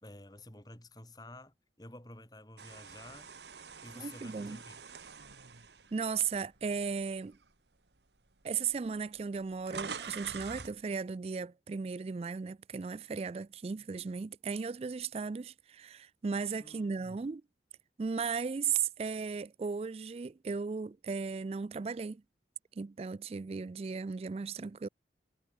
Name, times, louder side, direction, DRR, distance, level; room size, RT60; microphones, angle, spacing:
voice 1, 0.0-3.3 3.8-4.8 16.6-17.2, left 2 dB, 20° left, 3.3 m, -51 dB
sound 1, 2.6-6.8 7.3-7.5 8.4-8.5 8.7-10.8, right 5 dB, 80° right, 2.1 m, -46 dB
voice 2, 4.0-4.6 5.9-7.4 8.4-17.4 18.0-22.2 22.8-24.9, right 5 dB, 35° right, 0.3 m, -36 dB
head